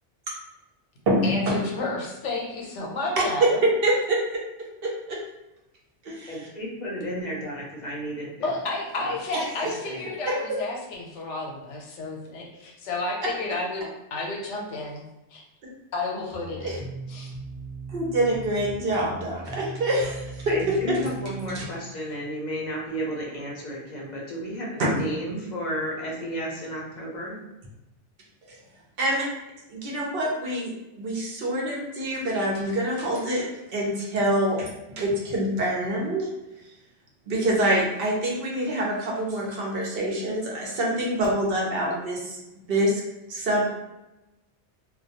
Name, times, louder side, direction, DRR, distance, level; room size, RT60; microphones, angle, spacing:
voice 1, 1.2-3.6 8.4-13.8 14.1-15.0 15.3-15.4 15.9-17.3, left 2 dB, 80° left, 0 dB, 0.9 m, -31 dB
voice 2, 3.2-3.9 4.8-5.2 6.0-6.5 16.6-16.8 17.9-20.4 20.9-21.0 21.5-21.7 29.0-29.3 29.7-34.7 35.0-36.3 37.3-42.4 42.7-43.0 43.3-43.6, right 1 dB, 60° right, -2 dB, 0.8 m, -25 dB
voice 3, 6.3-8.5 9.0-9.2 9.6-10.1 20.5-27.4, equal, 50° left, -4 dB, 0.6 m, -33 dB
sound 1, 16.3-21.6, right 3 dB, 10° right, 0.6 m, -39 dB
2.2 x 2.2 x 2.8 m, 0.95 s
omnidirectional pair, 1.2 m